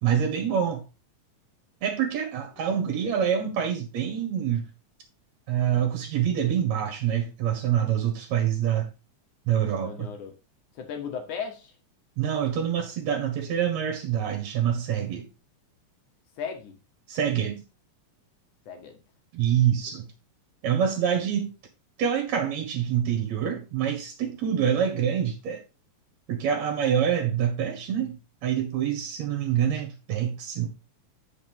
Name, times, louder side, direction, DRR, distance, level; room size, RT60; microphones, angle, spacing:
voice 1, 0.0-0.8 1.8-4.6 5.5-8.9 9.5-10.1 12.2-15.3 17.1-17.6 19.3-20.1 20.6-21.5 22.0-25.6 26.3-28.2 28.4-30.7, right 9 dB, 65° right, 2.5 m, -26 dB
voice 2, 9.8-10.3 10.8-11.7 16.4-16.7 18.7-19.0, left 6 dB, 75° left, 2.9 m, -36 dB
9.5 x 6.0 x 3.6 m
omnidirectional pair, 3.6 m